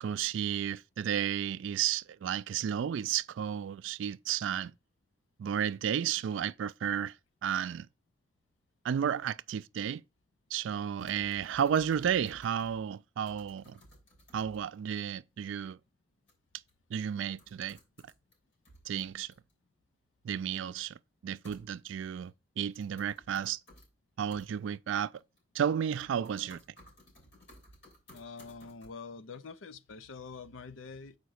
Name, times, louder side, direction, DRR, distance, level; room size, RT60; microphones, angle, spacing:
voice 1, 0.0-4.7 5.4-7.1 7.4-7.9 8.8-10.0 10.5-13.8 14.3-15.8 16.9-17.8 18.9-19.3 20.2-23.6 24.2-25.1 25.5-26.6, right 8 dB, 75° right, 0.3 m, -32 dB
sound 1, 11.0-12.9 13.3-14.7 16.3-16.4 16.7-16.8 17.4-18.3 18.6-19.5 21.4-22.1 22.7-23.9 24.3-24.5 25.2-25.6 25.9-28.9, left 1 dB, 60° left, 5.7 m, -57 dB
voice 2, 28.1-31.2, left 4 dB, 90° left, 0.6 m, -45 dB
6.7 x 5.1 x 6.3 m
head